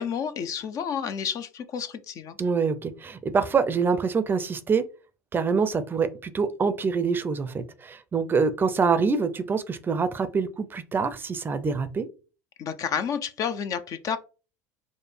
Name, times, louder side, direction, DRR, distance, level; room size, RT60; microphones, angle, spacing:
voice 1, 0.0-2.4 12.6-14.2, left 7 dB, 45° left, 11 dB, 0.5 m, -30 dB
voice 2, 2.4-4.8 5.3-12.1, right 5 dB, 25° right, 11 dB, 0.5 m, -25 dB
4.9 x 2.1 x 3.3 m, 0.34 s
hypercardioid pair, 75°, 8 cm